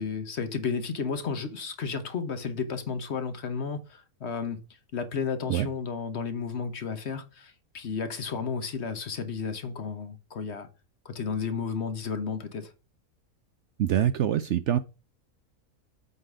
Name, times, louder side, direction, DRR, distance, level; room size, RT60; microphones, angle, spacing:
voice 1, 0.0-4.6 4.9-10.7 11.0-12.7, left 5 dB, 50° left, 1.1 m, -32 dB
voice 2, 13.8-14.8, right 10 dB, 65° right, 0.7 m, -24 dB
8.0 x 3.9 x 4.7 m
omnidirectional pair, 1.5 m